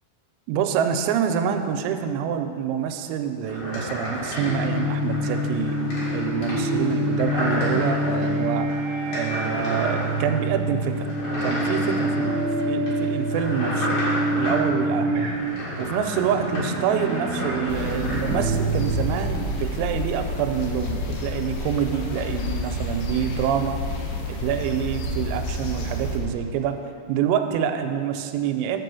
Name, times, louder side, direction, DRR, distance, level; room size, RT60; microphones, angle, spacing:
voice 1, 0.5-8.7 9.1-11.1 11.4-14.0 14.3-15.2 15.8-23.8 24.3-26.8 27.1-28.8, right 8 dB, 90° right, 7 dB, 3.3 m, -26 dB
sound 1, 3.4-18.3, equal, 55° left, 3.0 m, -32 dB
sound 2, 4.3-19.5, right 1 dB, 65° right, 2.6 m, -27 dB
sound 3, 17.7-26.2, left 2 dB, 75° left, 2.5 m, -29 dB
6.5 x 6.1 x 6.8 m, 2.3 s
omnidirectional pair, 5.9 m